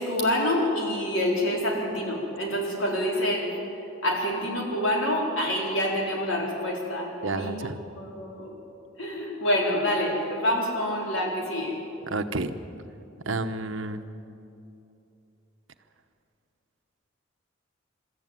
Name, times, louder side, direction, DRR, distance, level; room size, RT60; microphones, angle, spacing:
voice 1, 0.0-3.6 4.0-7.7 8.0-8.5 9.0-11.8, left 1 dB, 75° left, -1 dB, 4.3 m, -27 dB
voice 2, 7.2-7.8 12.1-12.5 13.3-14.0, right 2 dB, 75° right, 8 dB, 1.0 m, -30 dB
23.5 x 13.5 x 9.2 m, 2.8 s
head